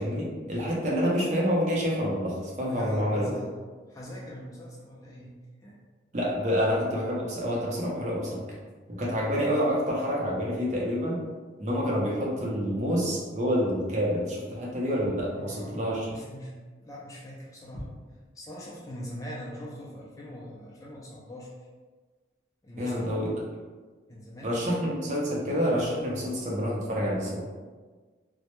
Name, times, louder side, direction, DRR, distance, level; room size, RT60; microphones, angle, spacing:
voice 1, 0.0-3.3 6.1-8.5 8.9-11.2 11.6-16.2 22.8-23.3 24.4-27.4, equal, 40° right, -4 dB, 0.5 m, -28 dB
voice 2, 2.6-3.6 3.9-5.3 5.6-5.8 15.3-15.8 16.1-16.5 16.8-17.9 18.3-21.5 22.6-23.2 24.1-24.8, equal, 20° left, -5 dB, 0.3 m, -42 dB
2.1 x 2.0 x 2.9 m, 1.4 s
head